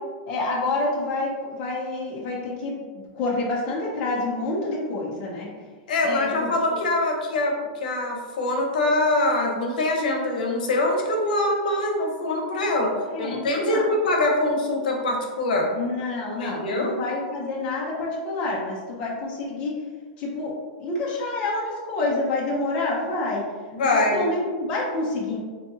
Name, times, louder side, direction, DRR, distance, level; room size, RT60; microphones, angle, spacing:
voice 1, 0.3-5.5 6.0-6.8 13.1-13.9 15.7-19.7 20.2-20.5 20.8-23.4 23.8-25.4, left 2 dB, 25° left, -4 dB, 0.5 m, -28 dB
voice 2, 5.9-7.5 7.8-15.7 16.4-16.9 23.7-24.3, left 2 dB, 80° left, 1 dB, 0.7 m, -24 dB
3.7 x 2.7 x 2.7 m, 1.5 s
supercardioid pair, 180°, 4 cm